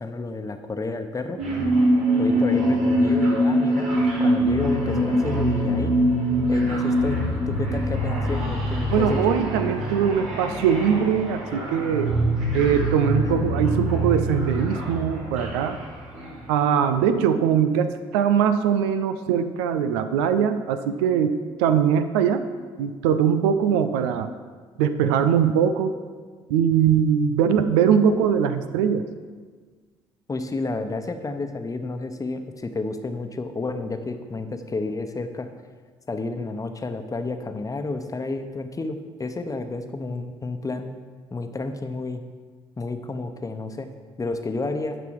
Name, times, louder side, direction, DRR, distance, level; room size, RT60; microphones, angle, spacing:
voice 1, 0.0-1.4 2.2-3.9 4.2-5.9 6.5-9.2 13.2-13.4 30.3-35.5 36.1-41.0 41.3-42.2 42.8-43.9 44.2-45.0, left 3 dB, 25° left, 7 dB, 1.0 m, -30 dB
sound 1, 1.4-16.5, equal, 60° right, 3.0 m, -24 dB
voice 2, 8.9-12.1 12.5-15.8 16.5-22.4 22.8-24.3 24.8-25.9 26.5-29.0, right 8 dB, 80° right, 10 dB, 0.6 m, -21 dB
11.0 x 6.0 x 4.8 m, 1.5 s
hypercardioid pair, 50°, 13 cm